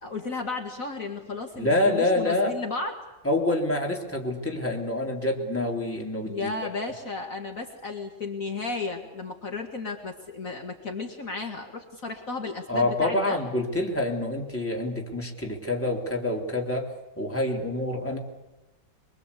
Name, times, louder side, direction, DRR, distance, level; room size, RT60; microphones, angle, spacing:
voice 1, 0.0-3.0 6.2-13.4, left 3 dB, 50° left, 2 dB, 2.4 m, -34 dB
voice 2, 1.5-2.5 3.2-6.5 12.7-18.2, left 1 dB, 5° left, 1 dB, 3.3 m, -27 dB
23.5 x 23.5 x 8.4 m, 1.0 s
omnidirectional pair, 1.9 m